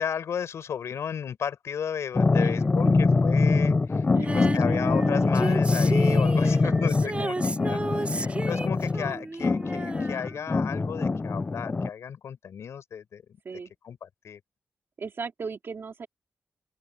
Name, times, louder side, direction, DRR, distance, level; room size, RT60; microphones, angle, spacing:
voice 1, 0.0-4.1 4.3-13.2 13.8-14.4, left 8 dB, 85° left, 6.2 m, -34 dB
sound 1, 2.1-11.9, left 3 dB, 30° left, 0.4 m, -24 dB
voice 2, 2.3-3.1 4.1-4.5 6.4-7.5 8.1-8.5 13.4-13.7 15.0-16.1, right 5 dB, 55° right, 2.5 m, -38 dB
Female singing, 4.2-10.9 11.1-11.2, right 2 dB, 25° right, 4.4 m, -33 dB
open air
cardioid pair, 80°, 5 cm